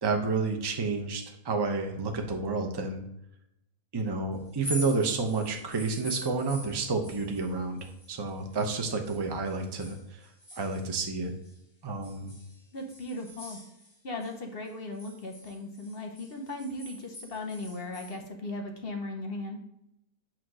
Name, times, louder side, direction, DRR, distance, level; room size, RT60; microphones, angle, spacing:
voice 1, 0.0-3.0 3.9-7.8 8.1-10.2 10.6-11.3 11.8-12.3, right 4 dB, 20° right, 4 dB, 0.7 m, -30 dB
sound 1, 4.5-8.7 9.0-11.6 12.0-14.4 14.7-18.2, equal, 20° left, 0.9 m, -45 dB
voice 2, 12.7-13.6 14.0-19.6, left 2 dB, 45° left, 3 dB, 1.1 m, -37 dB
8.8 x 2.9 x 6.2 m, 0.83 s
omnidirectional pair, 1.6 m